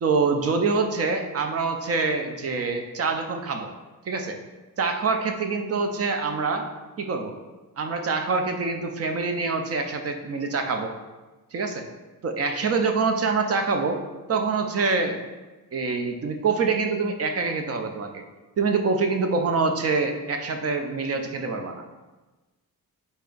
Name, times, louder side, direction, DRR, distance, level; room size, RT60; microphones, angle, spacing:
voice 1, 0.0-3.7 4.1-4.4 4.8-6.7 7.0-7.3 7.8-10.9 11.5-11.8 12.2-14.0 14.3-15.2 15.7-18.2 18.6-21.8, right 4 dB, 45° right, 5 dB, 0.4 m, -25 dB
4.2 x 3.4 x 3.8 m, 1.2 s
wide cardioid pair, 155°, 36 cm